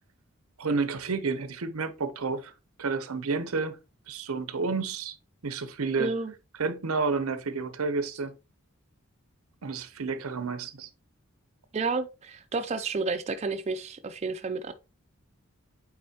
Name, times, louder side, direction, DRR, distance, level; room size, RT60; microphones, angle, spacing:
voice 1, 0.6-2.5 2.8-3.8 4.1-5.2 5.4-6.1 6.6-8.3 9.6-10.9, right 4 dB, 90° right, 0.8 m, -30 dB
voice 2, 6.0-6.3 11.7-14.7, right 4 dB, 30° right, 0.4 m, -31 dB
8.4 x 4.0 x 2.9 m
head